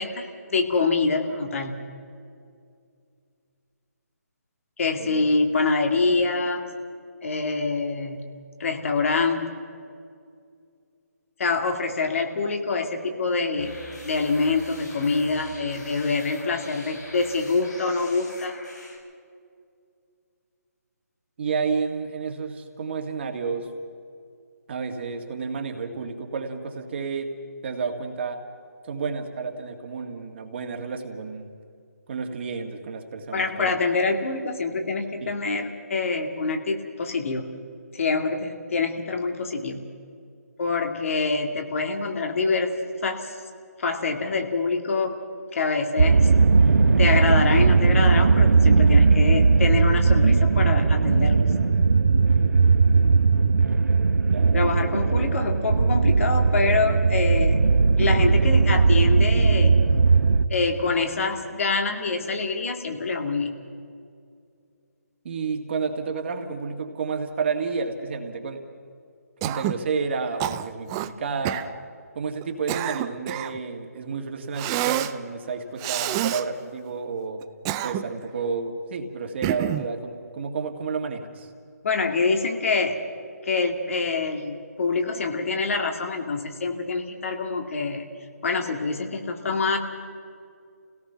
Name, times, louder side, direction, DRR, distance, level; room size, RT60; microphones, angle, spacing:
voice 1, 0.0-1.8 4.8-6.7 7.2-8.3 8.6-9.5 11.4-13.8 14.0-18.5 33.3-37.6 37.9-39.9 40.6-42.7 43.0-43.4 43.8-45.1 45.5-46.3 47.0-51.5 54.5-57.6 58.0-59.8 60.5-63.6 81.8-83.0 83.4-88.1 88.4-89.8, left 4 dB, 50° left, 4 dB, 2.4 m, -25 dB
sound 1, 13.6-19.0, left 1 dB, 85° left, 6.8 m, -44 dB
voice 2, 21.4-23.7 24.7-27.3 27.6-28.4 28.8-31.5 32.1-33.7 35.2-35.4 54.3-54.7 65.2-68.6 69.4-71.7 72.2-77.4 77.8-81.5, right 5 dB, 40° right, 4 dB, 2.1 m, -31 dB
sound 2, 46.0-60.5, right 4 dB, 75° right, 1.0 m, -18 dB
Cough, 69.4-69.8 70.4-71.1 71.4-71.7 72.4-73.6 74.6-75.1 75.8-76.4 77.4-78.2 79.4-79.9, right 14 dB, 15° right, 0.4 m, -28 dB
28.5 x 17.5 x 5.8 m, 2.3 s
figure-of-eight pair, 155°, 9 cm